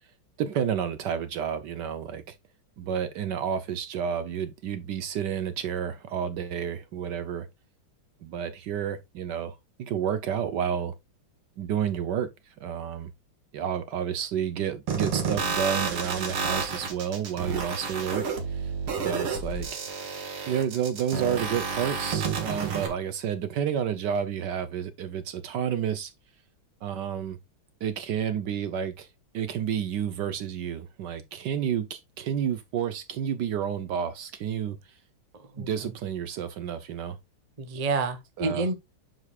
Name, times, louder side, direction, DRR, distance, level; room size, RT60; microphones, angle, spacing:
voice 1, 0.4-2.3 2.8-7.5 8.2-10.9 11.6-13.1 13.5-18.7 19.0-19.8 20.5-26.1 26.8-27.4 27.8-29.1 29.3-34.8 35.6-37.2 38.4-38.7, right 8 dB, 70° right, 1.2 m, -30 dB
sound 1, 14.9-22.9, right 5 dB, 85° right, 2.5 m, -30 dB
voice 2, 37.6-38.7, right 3 dB, 30° right, 0.7 m, -29 dB
9.5 x 5.2 x 2.3 m
omnidirectional pair, 2.3 m